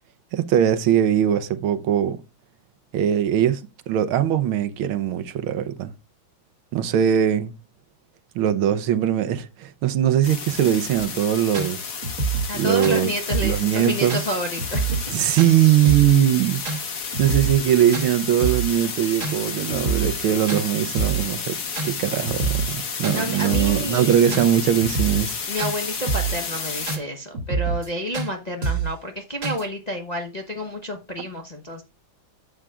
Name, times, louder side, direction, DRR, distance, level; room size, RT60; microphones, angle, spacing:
voice 1, 0.3-2.2 2.9-5.9 6.7-7.5 8.4-11.9 12.5-13.1 13.4-14.2 15.1-16.6 17.2-21.6 21.8-25.4, right 10 dB, 80° right, 1.6 m, -21 dB
sound 1, 10.2-27.0, left 5 dB, 45° left, 1.6 m, -31 dB
sound 2, 11.0-11.1 11.5-11.7 12.0-12.6 12.8-13.0 13.3-13.6 14.1-14.2 14.6-15.1 15.4-15.5 15.8-16.2 16.6-16.8 17.1-17.7 17.9-18.1 18.4-18.7 19.2-19.4 19.7-20.2 20.5-20.6 21.0-21.3 21.8-21.9 22.2-22.8 23.0-23.2 23.5-23.8 24.3-24.5 24.8-25.3 25.6-25.7 26.1-26.4 26.9-27.0 27.3-27.9 28.1-28.3 28.6-28.9 29.4-29.6, right 5 dB, 40° right, 1.9 m, -26 dB
voice 2, 12.5-15.1 23.1-24.4 25.5-31.8, equal, 30° left, 0.8 m, -30 dB
11.0 x 8.1 x 2.4 m
omnidirectional pair, 2.3 m